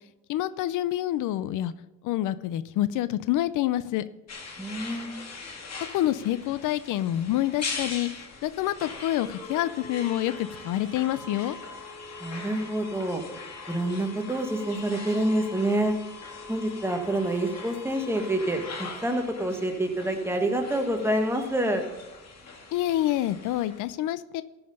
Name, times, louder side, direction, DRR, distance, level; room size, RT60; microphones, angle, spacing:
voice 1, 0.3-1.7 2.0-4.0 5.9-11.6 22.7-24.4, left 13 dB, 85° left, 15 dB, 0.5 m, -27 dB
sound 1, 4.3-23.8, left 4 dB, 60° left, 2.2 m, -41 dB
voice 2, 4.6-5.1 12.2-13.2 13.7-16.0 16.5-21.8, right 1 dB, 10° right, 3 dB, 1.7 m, -27 dB
14.0 x 5.8 x 5.4 m, 1.0 s
cardioid pair, 90°, 30 cm